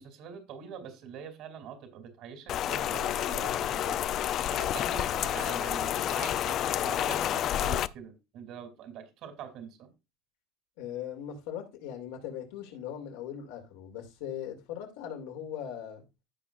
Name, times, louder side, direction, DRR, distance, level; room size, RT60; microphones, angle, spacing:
voice 1, 0.0-4.1 4.5-9.9, right 7 dB, 60° right, 2.8 m, -44 dB
Rain, 2.5-7.9, left 11 dB, 50° left, 0.4 m, -29 dB
voice 2, 10.8-16.0, left 9 dB, 80° left, 2.6 m, -39 dB
15.5 x 5.1 x 2.5 m
supercardioid pair, 110°, 0 cm